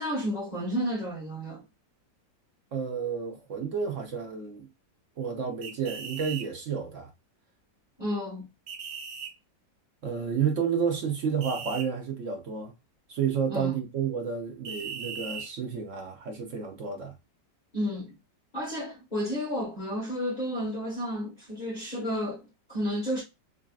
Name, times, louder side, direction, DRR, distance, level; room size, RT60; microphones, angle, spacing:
voice 1, 0.0-1.6 8.0-8.5 13.5-13.7 17.7-18.1 18.5-23.2, equal, 25° left, 1.2 m, -31 dB
voice 2, 2.7-4.7 5.2-7.1 10.0-12.7 13.1-17.1, right 6 dB, 55° right, 0.9 m, -31 dB
sound 1, 5.6-6.5 8.7-9.3 11.4-11.9 14.6-15.5, right 6 dB, 70° right, 1.5 m, -38 dB
4.9 x 2.8 x 2.3 m
omnidirectional pair, 1.9 m